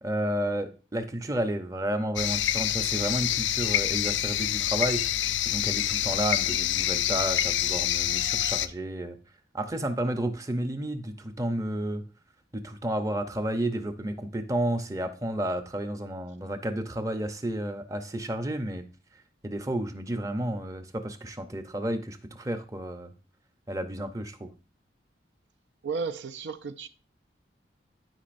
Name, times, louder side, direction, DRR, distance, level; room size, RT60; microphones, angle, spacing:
voice 1, 0.0-5.1 5.5-9.2 9.5-12.0 12.5-18.8 19.4-23.1 23.7-24.5, right 1 dB, 20° right, 0.6 m, -31 dB
sound 1, 2.2-8.7, left 12 dB, 80° left, 0.4 m, -27 dB
voice 2, 25.8-26.9, right 5 dB, 75° right, 0.5 m, -33 dB
12.0 x 5.2 x 2.5 m
head